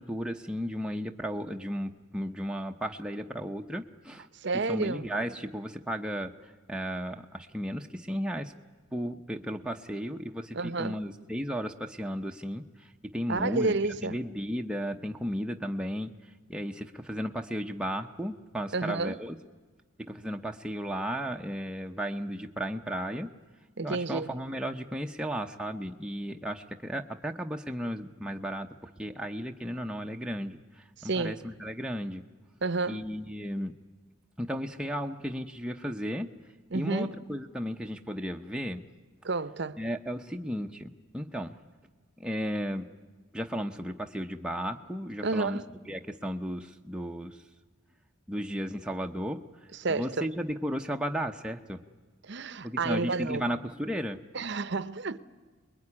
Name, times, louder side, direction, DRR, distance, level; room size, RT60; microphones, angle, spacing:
voice 1, 0.0-4.3 4.7-6.3 6.7-8.5 8.9-12.6 13.1-13.8 14.0-16.1 16.5-19.4 20.0-23.3 23.8-28.7 29.0-32.2 32.9-33.7 34.4-36.3 36.7-38.9 39.8-41.5 42.2-42.9 43.3-45.6 45.9-47.4 48.3-49.4 49.9-51.8 52.6-54.2, equal, 5° right, 0.7 m, -34 dB
voice 2, 4.3-5.1 10.5-11.0 13.3-14.2 18.7-19.2 23.8-24.4 31.0-31.4 32.6-33.1 36.7-37.2 39.2-39.8 45.2-45.7 49.7-50.3 52.2-53.5 54.3-55.2, right 3 dB, 55° right, 0.8 m, -30 dB
26.0 x 21.0 x 9.8 m
head